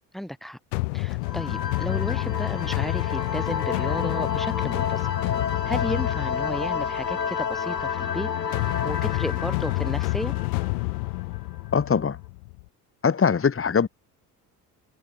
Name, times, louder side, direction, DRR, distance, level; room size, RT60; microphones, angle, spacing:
voice 1, 0.1-0.6 0.9-5.1 5.7-8.3 8.6-10.4, equal, ahead, 4.1 m, -33 dB
sound 1, 0.7-12.6, left 28 dB, 65° left, 4.0 m, -29 dB
sound 2, 1.2-11.6, left 6 dB, 90° left, 1.3 m, -31 dB
voice 2, 11.7-12.2 13.0-13.9, left 6 dB, 25° left, 3.4 m, -21 dB
figure-of-eight pair, 55°, 48 cm